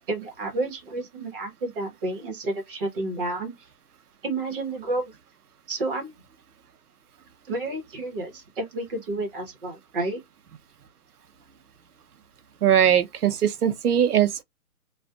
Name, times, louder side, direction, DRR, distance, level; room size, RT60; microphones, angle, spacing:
voice 1, 0.1-3.7 4.2-5.2 5.7-6.1 7.5-10.2, right 2 dB, 40° right, 1.2 m, -30 dB
voice 2, 12.6-14.4, right 9 dB, 85° right, 0.7 m, -20 dB
2.5 x 2.4 x 2.3 m
hypercardioid pair, 160°, 44 cm